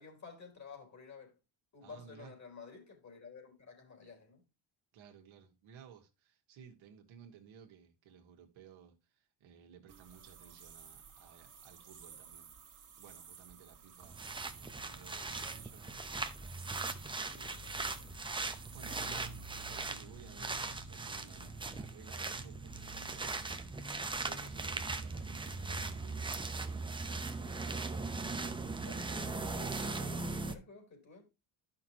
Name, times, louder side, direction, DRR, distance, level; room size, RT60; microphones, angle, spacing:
voice 1, 0.0-1.3 1.7-4.4 17.2-18.2 19.0-19.3 23.8-24.1 28.8-31.2, left 5 dB, 35° left, 3.9 m, -53 dB
voice 2, 1.8-2.3 4.9-12.5 13.0-14.2 14.5-16.0 18.4-28.0, right 7 dB, 70° right, 1.7 m, -57 dB
sound 1, 9.9-19.9, right 7 dB, 40° right, 1.7 m, -55 dB
sound 2, 14.0-30.6, right 3 dB, 10° right, 0.7 m, -39 dB
11.5 x 5.9 x 2.9 m
cardioid pair, 105°, 49 cm